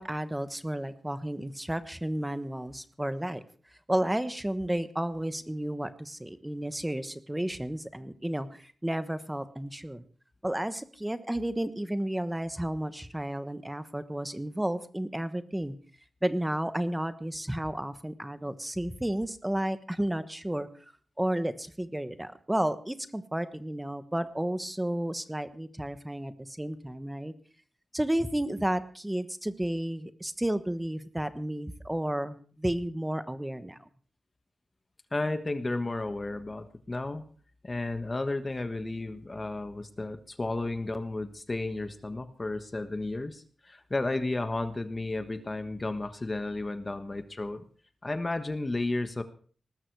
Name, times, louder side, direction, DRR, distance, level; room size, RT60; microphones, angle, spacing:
voice 1, 0.0-3.4 3.9-10.0 10.4-15.7 16.2-20.7 21.2-27.3 27.9-33.8, right 1 dB, 10° right, 11 dB, 1.2 m, -32 dB
voice 2, 35.1-37.2 37.6-47.6 48.0-49.2, left 2 dB, 25° left, 10 dB, 1.2 m, -33 dB
19.5 x 13.5 x 4.7 m, 0.43 s
wide cardioid pair, 140°, 0 cm